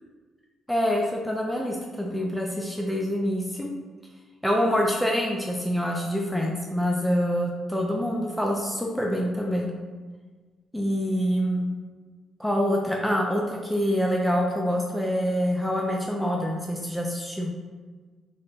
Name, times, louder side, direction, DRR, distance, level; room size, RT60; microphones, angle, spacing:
voice 1, 0.7-3.7 4.4-9.7 10.7-11.7 12.4-17.5, equal, ahead, -1 dB, 0.4 m, -26 dB
3.3 x 2.1 x 3.8 m, 1.4 s
cardioid pair, 90°, 0 cm